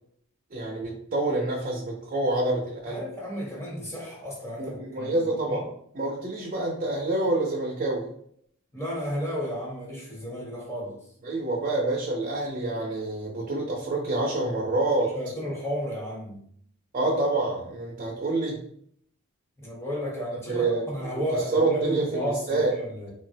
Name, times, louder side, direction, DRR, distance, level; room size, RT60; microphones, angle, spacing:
voice 1, 0.5-3.0 4.6-5.7 5.9-8.1 11.2-15.2 16.9-18.6 20.5-21.1 21.5-22.7, right 2 dB, 35° right, -1 dB, 0.5 m, -27 dB
voice 2, 2.9-5.1 5.4-5.6 8.7-10.9 15.1-16.4 19.6-23.1, equal, 15° left, -4 dB, 1.0 m, -33 dB
3.6 x 2.0 x 2.7 m, 0.65 s
head